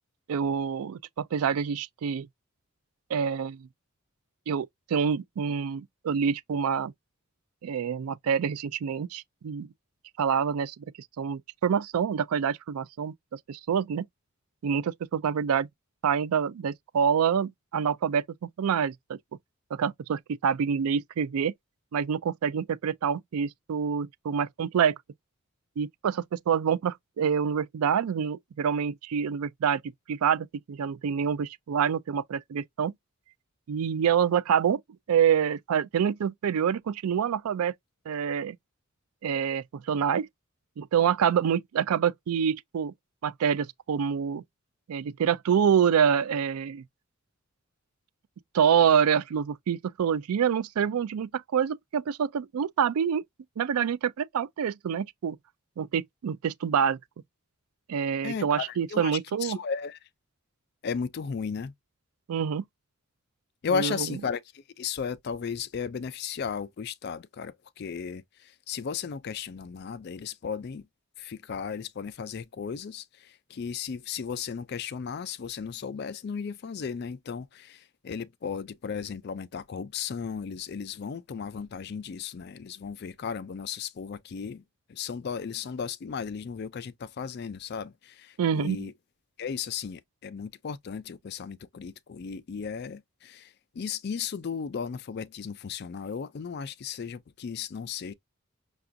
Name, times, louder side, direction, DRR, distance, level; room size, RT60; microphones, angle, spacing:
voice 1, 0.3-2.3 3.1-3.7 4.5-6.9 7.6-9.7 10.2-10.8 11.2-14.0 14.6-15.7 16.0-18.2 18.6-19.2 19.7-21.5 21.9-24.9 25.8-29.8 30.1-32.9 33.7-34.8 35.1-37.7 38.1-38.6 39.2-40.3 40.8-42.9 43.2-44.4 44.9-46.8 48.5-53.2 53.6-55.4 55.8-57.0 57.9-59.6 62.3-62.6 63.7-64.1 88.4-88.9, right 7 dB, 85° right, 0.4 m, -26 dB
voice 2, 58.2-59.1 59.4-60.0 60.8-61.7 63.6-70.9 71.2-84.6 84.9-88.9 89.4-98.1, left 6 dB, 50° left, 0.3 m, -35 dB
5.8 x 2.4 x 2.5 m
head